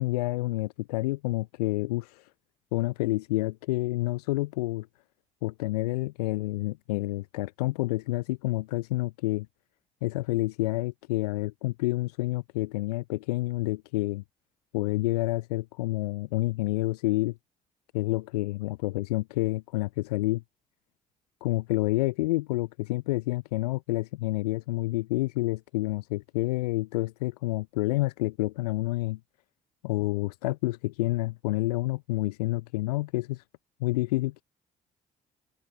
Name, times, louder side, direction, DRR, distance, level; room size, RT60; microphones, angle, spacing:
voice 1, 0.0-2.3 2.7-4.9 5.4-9.5 10.0-14.2 14.7-17.4 17.9-20.4 21.4-29.2 29.8-33.4 33.8-34.4, left 19 dB, 90° left, 6.3 m, -29 dB
hypercardioid pair, 50°, 20 cm